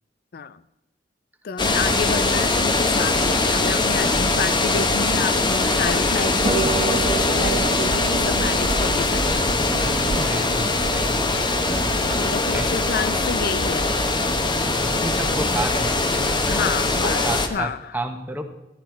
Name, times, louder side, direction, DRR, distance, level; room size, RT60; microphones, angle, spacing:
voice 1, 1.4-9.6 12.2-13.9 16.5-17.9, left 5 dB, 60° left, 14 dB, 0.5 m, -29 dB
sound 1, 1.6-17.5, left 2 dB, 25° left, 1.1 m, -22 dB
Harp, 6.4-13.1, right 4 dB, 30° right, 0.4 m, -30 dB
voice 2, 9.8-11.3 11.6-11.8 12.5-12.8 14.8-16.6 17.0-18.4, right 1 dB, 10° right, 5 dB, 1.4 m, -31 dB
13.0 x 11.5 x 4.6 m, 0.95 s
head